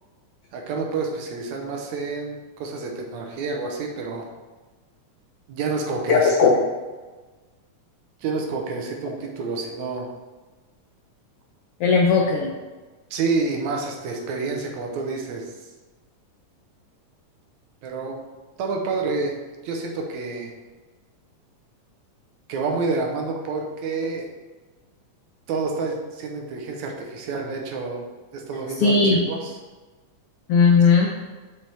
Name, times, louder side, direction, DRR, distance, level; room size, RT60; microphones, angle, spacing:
voice 1, 0.5-4.3 5.5-6.5 8.2-10.1 13.1-15.5 17.8-18.2 18.6-19.4 19.6-20.5 22.5-24.3 25.5-28.1 28.3-29.5, right 4 dB, 75° right, 1 dB, 2.2 m, -28 dB
voice 2, 6.1-6.5 11.8-12.5 28.8-29.2 30.5-31.1, left 5 dB, 85° left, 0 dB, 1.2 m, -17 dB
7.2 x 6.2 x 3.4 m, 1.3 s
omnidirectional pair, 3.5 m